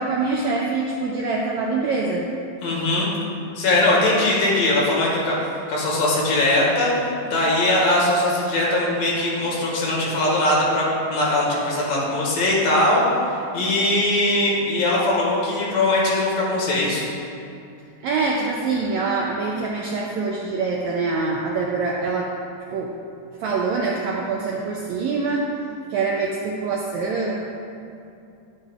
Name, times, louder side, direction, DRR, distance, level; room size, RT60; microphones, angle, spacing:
voice 1, 0.0-2.3 18.0-22.3 22.7-22.9 23.4-25.5 25.9-27.3, right 4 dB, 80° right, -2 dB, 1.6 m, -24 dB
voice 2, 2.6-3.1 3.6-5.4 5.7-6.9 7.2-17.1, left 1 dB, 85° left, -5 dB, 3.5 m, -20 dB
9.9 x 9.7 x 2.4 m, 2.6 s
omnidirectional pair, 4.0 m